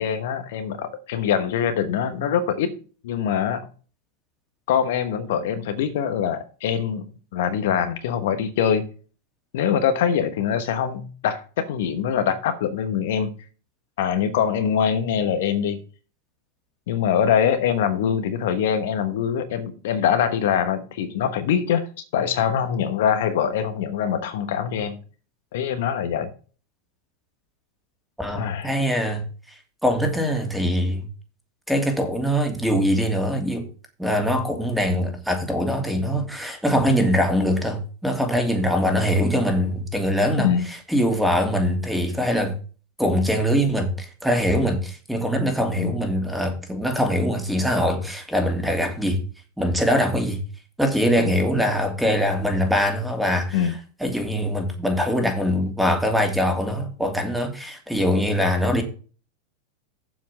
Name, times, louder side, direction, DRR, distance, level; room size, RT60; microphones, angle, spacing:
voice 1, 0.0-2.7 3.0-3.7 4.7-8.8 9.5-13.3 14.0-15.8 16.9-21.8 22.1-25.0 25.5-26.3 28.3-28.7 38.8-38.9 40.4-40.7 45.8-45.9 51.2-51.3 53.5-53.7, left 8 dB, 65° left, 1.2 m, -23 dB
voice 2, 28.2-29.2 29.8-31.1 31.7-33.6 34.0-42.5 43.0-49.2 49.6-50.4 50.8-53.7 54.0-58.8, equal, 5° right, 2.7 m, -23 dB
7.5 x 5.8 x 7.3 m
hypercardioid pair, 95°, 0 cm